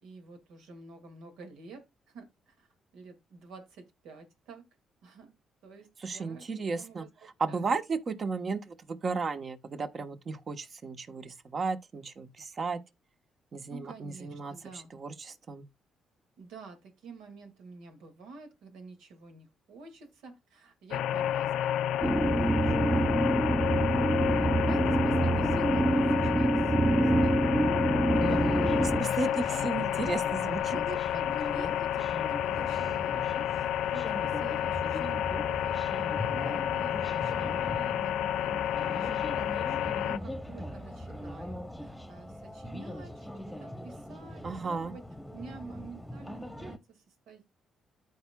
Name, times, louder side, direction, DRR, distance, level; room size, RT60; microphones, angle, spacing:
voice 1, 0.0-2.7 2.9-4.7 5.0-5.3 5.6-6.5 6.8-7.8 13.7-14.9 16.4-23.0 23.8-24.1 24.4-27.4 28.1-29.0 29.3-29.7 30.7-45.0 45.3-47.4, right 3 dB, 90° right, 2.1 m, -48 dB
voice 2, 6.0-7.0 7.4-12.8 13.5-15.6 28.2-30.7 44.4-44.9, right 4 dB, 45° right, 1.1 m, -34 dB
sound 1, 20.9-40.2, left 11 dB, 85° left, 0.4 m, -30 dB
sound 2, 22.0-29.0, right 2 dB, 15° right, 0.4 m, -26 dB
sound 3, 28.3-46.8, equal, 5° left, 1.1 m, -40 dB
14.0 x 4.8 x 2.3 m
cardioid pair, 90°, 0 cm